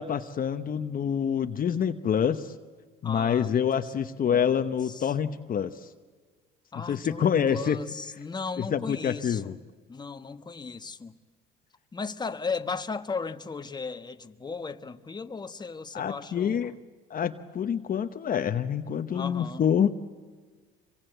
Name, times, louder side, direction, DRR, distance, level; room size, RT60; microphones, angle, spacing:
voice 1, 0.0-2.5 3.0-5.9 6.9-7.8 8.7-9.5 15.9-16.7 17.1-19.9, left 8 dB, 45° left, 1.0 m, -27 dB
voice 2, 3.0-5.1 6.7-9.6 9.9-11.2 11.9-16.8 19.1-19.6, left 4 dB, 20° left, 1.3 m, -36 dB
26.0 x 24.0 x 8.0 m
supercardioid pair, 90°, 20 cm